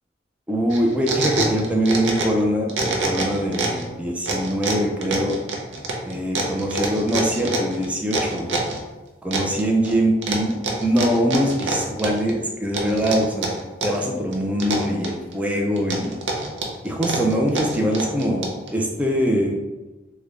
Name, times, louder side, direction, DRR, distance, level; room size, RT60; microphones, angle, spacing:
voice 1, 0.5-5.4 6.0-8.6 9.2-13.5 13.8-16.2 16.8-19.6, equal, 5° right, 0 dB, 0.4 m, -23 dB
sound 1, 0.7-2.4 2.7-3.8 4.2-8.8 9.3-9.9 10.2-12.3 12.7-14.0 14.3-15.3 15.8-18.7, right 3 dB, 65° right, 0.6 m, -26 dB
3.2 x 2.2 x 3.6 m, 1.1 s
head